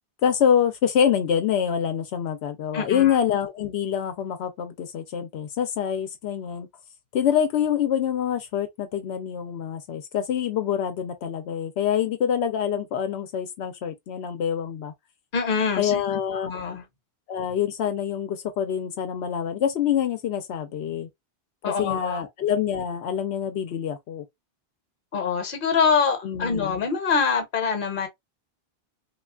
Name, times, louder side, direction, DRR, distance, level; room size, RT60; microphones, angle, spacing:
voice 1, 0.2-6.7 7.1-14.9 15.8-16.5 17.3-21.1 21.8-24.2 26.2-26.7, left 8 dB, 85° left, 0.9 m, -26 dB
voice 2, 2.7-3.1 15.3-16.0 16.4-16.8 21.6-22.2 25.1-28.1, left 5 dB, 60° left, 1.0 m, -24 dB
3.2 x 2.4 x 2.3 m
omnidirectional pair, 1.0 m